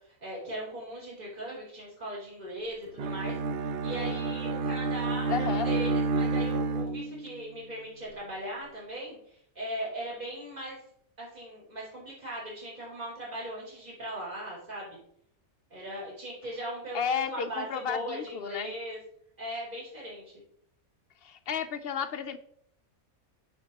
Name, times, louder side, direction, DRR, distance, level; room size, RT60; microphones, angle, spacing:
voice 1, 0.2-3.3 3.8-10.8 11.2-15.0 15.7-19.0 19.4-20.3, right 1 dB, 30° right, -6 dB, 3.2 m, -39 dB
Bowed string instrument, 3.0-7.4, right 3 dB, 55° right, 0.8 m, -29 dB
voice 2, 5.3-5.7 16.9-18.7 21.2-22.4, left 7 dB, 60° left, 9 dB, 0.6 m, -32 dB
9.2 x 7.2 x 2.9 m, 0.69 s
omnidirectional pair, 1.5 m